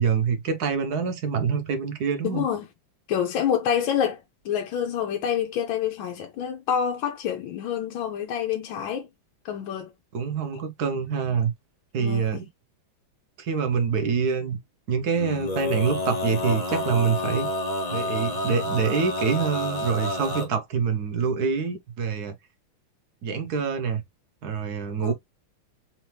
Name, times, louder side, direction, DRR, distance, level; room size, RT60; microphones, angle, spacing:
voice 1, 0.0-2.5 10.1-11.5 11.9-12.5 13.4-14.6 14.9-17.5 17.9-22.3 23.2-24.0 24.4-25.1, right 6 dB, 55° right, 1.3 m, -25 dB
voice 2, 2.2-2.6 3.1-9.1 9.4-9.9 12.0-12.4 25.0-25.1, left 8 dB, 90° left, 1.5 m, -27 dB
Male singing, 15.1-20.5, left 1 dB, 25° left, 1.0 m, -29 dB
4.4 x 2.6 x 3.2 m
omnidirectional pair, 2.2 m